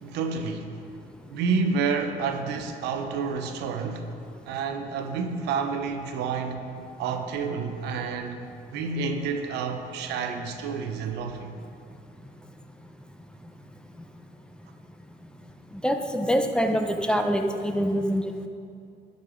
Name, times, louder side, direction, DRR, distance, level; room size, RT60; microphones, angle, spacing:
voice 1, 0.0-0.8 1.3-4.2 4.5-6.7 7.0-11.6, right 5 dB, 85° right, 6 dB, 0.8 m, -29 dB
voice 2, 15.8-18.5, equal, 5° left, 5 dB, 0.6 m, -25 dB
11.5 x 5.4 x 5.0 m, 2.5 s
cardioid pair, 110°, 17 cm